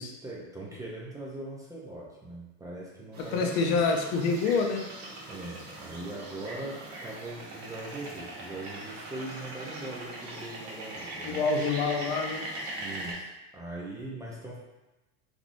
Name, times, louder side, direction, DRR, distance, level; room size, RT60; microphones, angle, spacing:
voice 1, 0.0-3.9 5.3-11.5 12.8-13.3 13.5-14.6, right 2 dB, 10° right, -5 dB, 0.3 m, -41 dB
sound 1, 3.1-13.1, right 1 dB, 50° right, 1.0 m, -41 dB
voice 2, 3.3-4.9 11.2-12.5, left 4 dB, 80° left, 3 dB, 0.6 m, -27 dB
3.5 x 2.5 x 2.5 m, 1.0 s
supercardioid pair, 130°, 36 cm